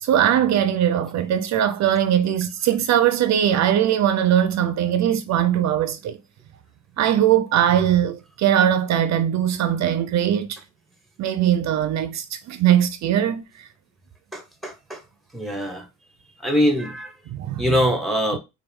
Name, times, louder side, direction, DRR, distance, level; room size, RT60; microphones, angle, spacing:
voice 1, 0.0-6.2 7.0-10.6 11.2-13.7 17.3-18.0, right 10 dB, 65° right, 0.5 m, -20 dB
voice 2, 14.3-15.0 15.3-15.8 16.4-17.1 17.6-18.4, equal, ahead, 1.0 m, -23 dB
4.4 x 2.3 x 3.5 m
cardioid pair, 90°, 30 cm